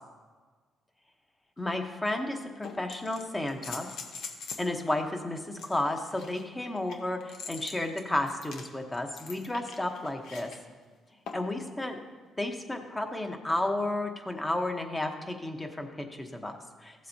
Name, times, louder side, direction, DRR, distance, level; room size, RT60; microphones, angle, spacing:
sound 1, 1.6-1.7 2.6-4.7 5.6-10.6 11.3-11.6 13.2-13.3, left 5 dB, 80° left, 1.0 m, -44 dB
voice 1, 1.6-3.9 4.6-10.5 11.3-12.0 12.4-17.1, left 1 dB, 15° left, 4 dB, 1.1 m, -32 dB
14.5 x 7.4 x 2.8 m, 1.4 s
cardioid pair, 90°, 0 cm